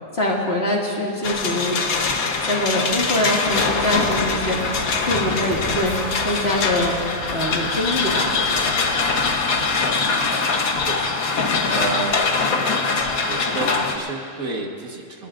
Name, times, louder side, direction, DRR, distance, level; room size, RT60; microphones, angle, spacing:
voice 1, 0.1-2.0 2.4-6.9 7.3-8.7, left 1 dB, 45° left, -3 dB, 2.5 m, -24 dB
sound 1, 1.2-14.0, left 4 dB, 75° left, 1.6 m, -23 dB
sound 2, 3.4-9.6, equal, 45° right, 3.8 m, -36 dB
voice 2, 10.8-12.3 13.2-15.3, right 3 dB, 75° right, 1 dB, 2.1 m, -31 dB
29.0 x 18.0 x 2.6 m, 2.5 s
omnidirectional pair, 1.5 m